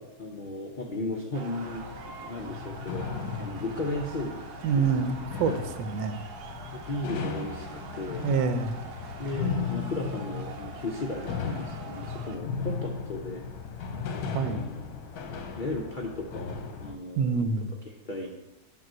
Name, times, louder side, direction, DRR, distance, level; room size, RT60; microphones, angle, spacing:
voice 1, 0.2-3.1 3.4-4.4 4.7-5.1 6.7-8.3 9.2-13.5 14.5-14.8 15.5-17.5 18.1-18.3, left 2 dB, 90° left, 0 dB, 0.4 m, -35 dB
sound 1, 1.3-12.3, right 5 dB, 65° right, 1.3 m, -45 dB
sound 2, 1.6-16.9, left 5 dB, 65° left, 1.1 m, -36 dB
voice 2, 4.6-6.2 8.2-8.7 14.3-14.6 17.2-17.7, right 5 dB, 90° right, 10 dB, 1.3 m, -27 dB
9.0 x 3.0 x 6.2 m, 1.0 s
omnidirectional pair, 1.9 m